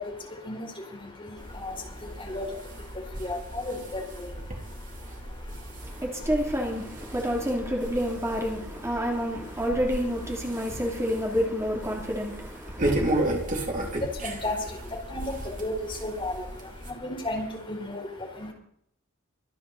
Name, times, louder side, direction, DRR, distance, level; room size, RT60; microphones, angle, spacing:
voice 1, 0.0-6.1 7.1-7.2 8.9-9.1 9.4-9.5 10.5-10.8 11.9-12.1 12.6-18.5, left 1 dB, 25° left, 4.6 m, -36 dB
sound 1, 1.4-16.9, right 1 dB, 40° right, 3.4 m, -35 dB
voice 2, 5.8-13.3, equal, 15° right, 3.1 m, -29 dB
24.5 x 9.9 x 4.2 m
head